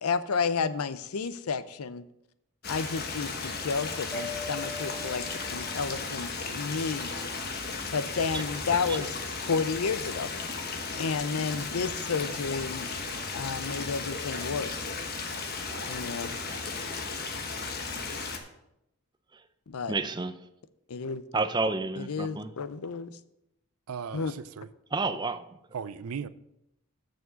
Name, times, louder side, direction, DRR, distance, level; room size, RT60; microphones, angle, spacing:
voice 1, 0.0-2.0 2.7-5.2 5.5-7.1 7.9-9.2 9.5-10.3 11.0-12.9 13.3-14.9 15.9-16.4 19.7-20.0 20.9-21.2 22.0-23.2 24.1-24.3, left 5 dB, 80° left, 0.6 m, -31 dB
Stream, 2.6-18.4, left 4 dB, 45° left, 1.1 m, -35 dB
Mallet percussion, 4.1-6.2, left 2 dB, ahead, 0.9 m, -41 dB
voice 2, 15.7-16.2 23.9-24.7 25.7-26.3, right 6 dB, 80° right, 0.5 m, -38 dB
voice 3, 19.9-20.3 21.3-22.5 24.9-25.4, right 3 dB, 20° right, 0.4 m, -30 dB
7.0 x 6.3 x 6.9 m
head